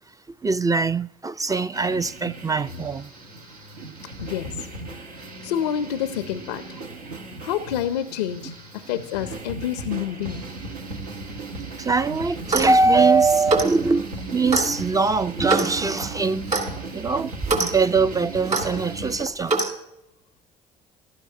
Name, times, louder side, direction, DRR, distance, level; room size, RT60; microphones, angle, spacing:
voice 1, 0.4-3.1 11.8-16.5 16.9-17.3 17.6-19.5, right 4 dB, 20° right, 0.4 m, -22 dB
sound 1, 1.7-19.2, right 3 dB, 85° right, 1.2 m, -36 dB
voice 2, 4.2-4.7 5.4-6.6 7.4-10.4, left 10 dB, 85° left, 0.5 m, -28 dB
Clock, 12.4-12.8 13.5-13.8 14.5-14.7 15.5-15.7 16.5-16.7 17.4-17.7 18.5-18.7 19.5-19.7, right 3 dB, 35° right, 2.5 m, -23 dB
15.5 x 12.0 x 2.7 m
hypercardioid pair, 55°, 20 cm